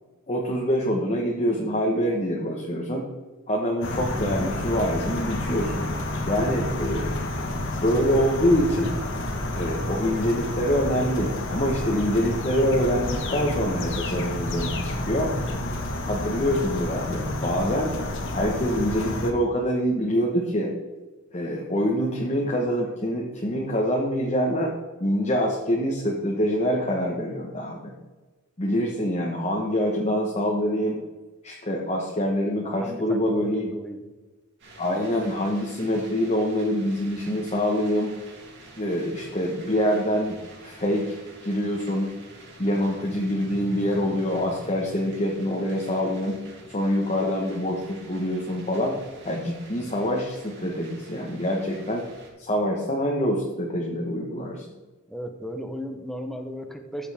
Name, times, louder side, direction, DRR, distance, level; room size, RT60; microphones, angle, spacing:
voice 1, 0.3-3.0 3.5-5.8 6.3-7.2 7.8-8.9 9.5-15.3 16.0-17.9 18.3-20.7 21.3-24.7 25.0-27.9 28.6-31.0 31.4-33.6 34.8-38.2 38.8-40.4 40.6-41.1 41.4-42.1 42.6-46.4 46.7-49.0 49.2-52.1 52.4-54.6, equal, 30° left, -2 dB, 1.2 m, -25 dB
sound 1, 3.8-19.3, left 1 dB, 60° left, 1.5 m, -30 dB
voice 2, 32.6-34.0 55.1-57.1, equal, ahead, 5 dB, 0.9 m, -35 dB
sound 2, 34.6-52.3, right 2 dB, 60° right, 3.0 m, -46 dB
14.0 x 7.2 x 3.6 m, 1.2 s
head